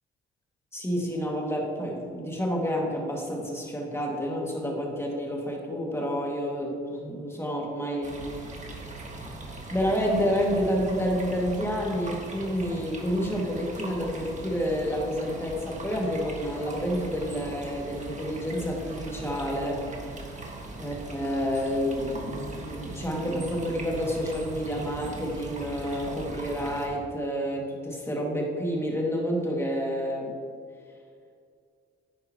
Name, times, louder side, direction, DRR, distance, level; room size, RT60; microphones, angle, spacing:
voice 1, 0.7-8.2 9.7-19.8 20.8-30.3, equal, 10° left, -2 dB, 2.1 m, -29 dB
sound 1, 8.0-26.9, right 2 dB, 35° right, 1.7 m, -40 dB
10.0 x 9.4 x 3.0 m, 2.3 s
cardioid pair, 95°, 21 cm